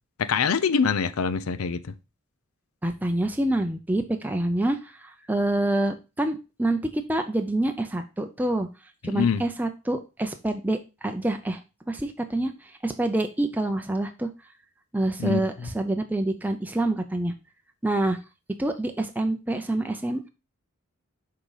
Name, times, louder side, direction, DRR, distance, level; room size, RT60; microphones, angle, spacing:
voice 1, 0.2-1.8 9.0-9.4 15.2-15.7, left 6 dB, 80° left, 0.5 m, -24 dB
voice 2, 2.8-8.7 9.0-11.6 11.9-14.3 14.9-17.3 17.8-18.2 18.6-20.3, right 1 dB, 10° right, 0.5 m, -27 dB
6.3 x 3.8 x 4.8 m
head